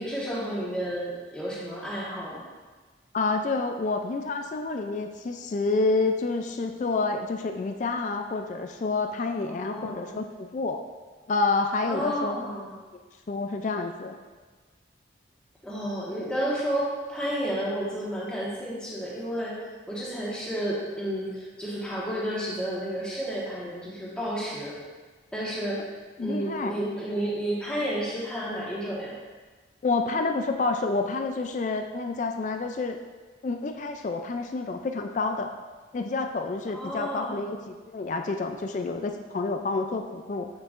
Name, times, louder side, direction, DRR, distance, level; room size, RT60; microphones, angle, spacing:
voice 1, 0.0-2.4 9.5-10.2 11.8-12.7 15.6-19.6 19.9-24.8 25.3-25.8 26.2-29.1 36.7-37.4, equal, 5° left, -7 dB, 1.3 m, -31 dB
voice 2, 3.1-10.8 11.3-12.4 13.3-14.2 26.2-26.7 29.8-33.0 33.4-35.5 35.9-40.5, left 3 dB, 40° left, 5 dB, 0.3 m, -28 dB
8.0 x 6.3 x 2.5 m, 1.4 s
head